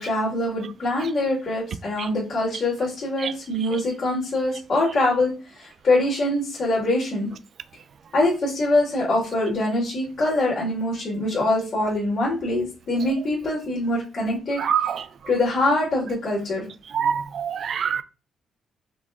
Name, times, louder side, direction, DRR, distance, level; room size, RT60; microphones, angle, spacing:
voice 1, 0.0-7.3 8.1-14.9 15.3-16.7, left 2 dB, 45° left, 1.9 m, -24 dB
voice 2, 14.6-15.0 16.9-18.0, right 8 dB, 55° right, 0.4 m, -24 dB
5.0 x 2.2 x 3.6 m
cardioid pair, 90°, 0 cm